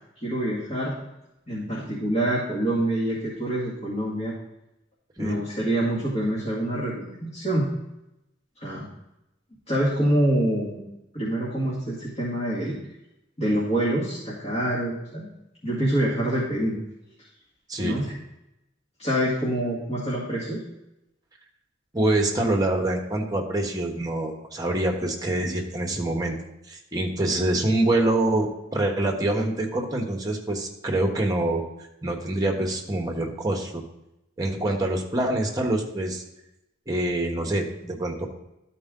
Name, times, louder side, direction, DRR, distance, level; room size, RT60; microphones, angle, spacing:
voice 1, 0.2-1.0 1.5-4.3 5.2-7.7 8.6-8.9 9.7-10.8 11.1-12.8 13.4-15.3 15.6-16.8 17.8-18.1 19.0-20.6, right 1 dB, 30° left, -8 dB, 2.1 m, -26 dB
voice 2, 17.7-18.0 21.9-26.3 26.7-31.6 32.0-33.8 34.4-36.2 36.9-38.3, right 1 dB, 20° right, 1 dB, 1.1 m, -25 dB
12.5 x 4.6 x 3.7 m, 0.88 s
head